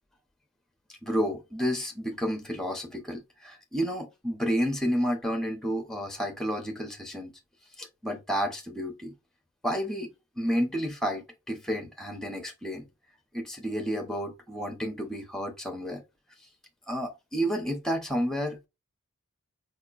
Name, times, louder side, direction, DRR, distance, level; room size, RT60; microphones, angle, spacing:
voice 1, 0.9-7.3 7.8-9.1 9.6-12.8 13.3-16.0 16.9-18.7, equal, ahead, 0.7 m, -31 dB
4.6 x 2.8 x 2.4 m
head